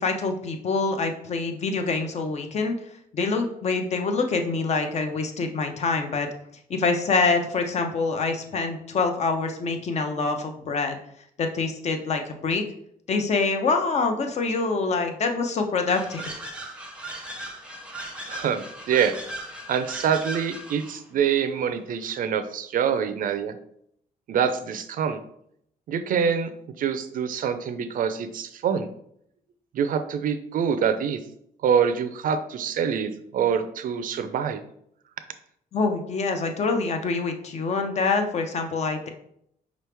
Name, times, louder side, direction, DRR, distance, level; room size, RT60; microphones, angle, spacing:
voice 1, 0.0-2.8 3.1-6.3 6.7-11.0 11.4-12.6 13.1-16.3 35.7-39.1, left 4 dB, 45° left, 5 dB, 0.7 m, -25 dB
sound 1, 15.9-21.0, right 1 dB, 5° right, 0.7 m, -38 dB
voice 2, 18.3-19.2 19.7-23.5 24.3-25.2 25.9-26.5 26.8-28.9 29.7-31.2 31.6-34.6, right 7 dB, 60° right, 9 dB, 0.5 m, -25 dB
4.9 x 3.1 x 3.4 m, 0.71 s
cardioid pair, 115°, 16 cm